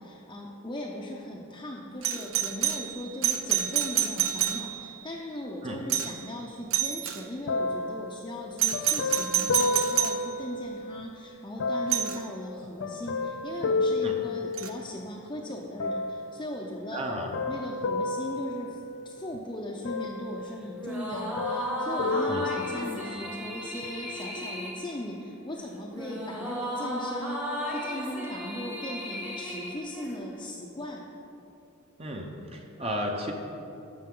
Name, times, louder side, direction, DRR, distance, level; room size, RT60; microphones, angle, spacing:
voice 1, 0.0-17.1 17.5-18.8 19.0-31.0, left 1 dB, 20° left, -3 dB, 0.6 m, -38 dB
Doorbell, 2.0-5.0 5.9-6.3 6.7-7.2 8.6-10.2 11.9-12.2 14.6-14.7, right 10 dB, 75° right, 0.6 m, -28 dB
sound 1, 7.5-11.1 11.6-15.1 15.8-16.5 17.1-19.4 19.8-20.9 21.1-23.2 23.8-23.9, left 3 dB, 65° left, 0.4 m, -32 dB
voice 2, 16.9-17.3 22.3-22.4 32.0-33.3, equal, 30° right, 1 dB, 0.8 m, -33 dB
sound 2, 20.7-30.5, equal, 5° right, 1.0 m, -35 dB
13.0 x 6.0 x 3.8 m, 2.8 s
head